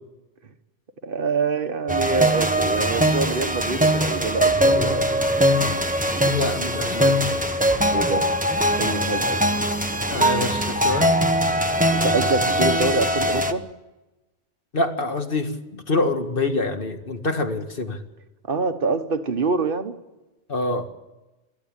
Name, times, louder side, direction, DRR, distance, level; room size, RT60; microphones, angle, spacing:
voice 1, 1.0-5.2 7.9-8.3 8.8-9.5 11.9-13.6 18.5-19.9, right 3 dB, 50° right, 8 dB, 1.5 m, -25 dB
sound 1, 1.9-13.5, equal, 5° right, 1.0 m, -21 dB
voice 2, 6.2-7.3 10.1-11.1 14.7-18.0 20.5-20.9, left 2 dB, 50° left, 6 dB, 2.1 m, -26 dB
22.0 x 15.0 x 8.9 m, 1.1 s
omnidirectional pair, 1.2 m